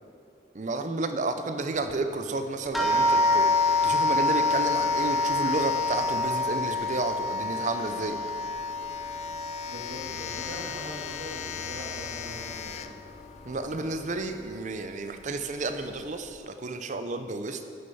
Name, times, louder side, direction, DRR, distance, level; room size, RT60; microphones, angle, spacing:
voice 1, 0.5-8.2 13.4-17.6, right 3 dB, 40° right, 8 dB, 0.5 m, -31 dB
Domestic sounds home sounds, 1.7-14.2, left 8 dB, 40° left, 0.3 m, -40 dB
sound 1, 2.7-11.6 11.9-12.8 13.5-13.6 14.0-14.2, left 2 dB, ahead, 0.7 m, -27 dB
voice 2, 9.6-13.1, equal, 65° right, -7 dB, 1.6 m, -41 dB
9.8 x 6.5 x 5.5 m, 2.6 s
head